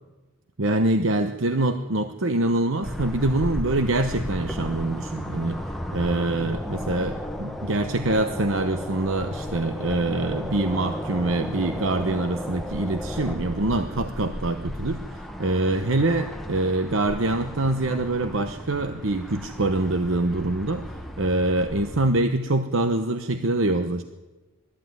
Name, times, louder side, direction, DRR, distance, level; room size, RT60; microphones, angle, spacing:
voice 1, 0.6-5.6 5.9-20.8 21.2-24.0, right 2 dB, 60° right, 8 dB, 1.0 m, -25 dB
sound 1, 2.8-22.1, equal, ahead, 1.1 m, -34 dB
20.5 x 14.0 x 9.4 m, 1.1 s
head